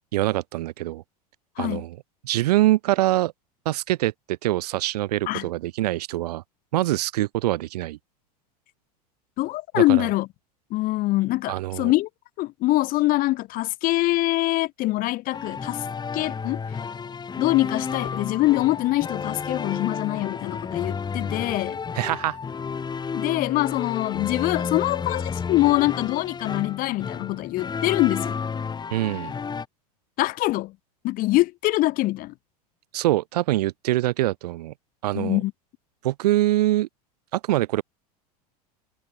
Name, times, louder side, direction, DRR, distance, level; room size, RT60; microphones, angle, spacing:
voice 1, 0.1-1.0 1.6-2.0 2.2-3.3 3.7-6.4 6.7-8.0 9.7-10.1 11.5-11.9 21.9-22.4 28.9-29.3 32.9-34.7 35.0-35.4 36.0-36.9 37.3-37.8, right 16 dB, 75° right, 0.6 m, -24 dB
voice 2, 9.4-10.3 10.7-12.1 12.4-15.8 16.1-16.6 17.4-21.8 23.1-28.4 30.2-30.7 31.0-32.3 35.1-35.5, left 18 dB, 45° left, 0.8 m, -24 dB
sound 1, 15.3-29.7, left 6 dB, 20° left, 2.2 m, -31 dB
hypercardioid pair, 95°, 20 cm